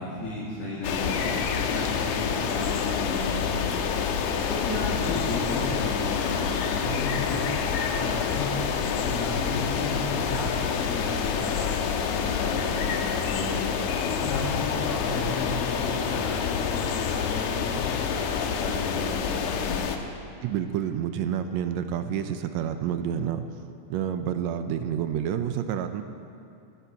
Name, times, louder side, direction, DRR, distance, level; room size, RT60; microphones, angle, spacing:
voice 1, 0.0-3.8 4.5-7.4 7.8-8.5 8.8-13.6 14.1-19.9, left 1 dB, 50° left, -8 dB, 3.1 m, -34 dB
sound 1, 0.8-20.0, left 7 dB, 80° left, 2.3 m, -27 dB
voice 2, 20.4-23.5 23.9-26.0, right 9 dB, 75° right, 9 dB, 1.7 m, -29 dB
16.5 x 14.0 x 4.7 m, 2.6 s
omnidirectional pair, 3.6 m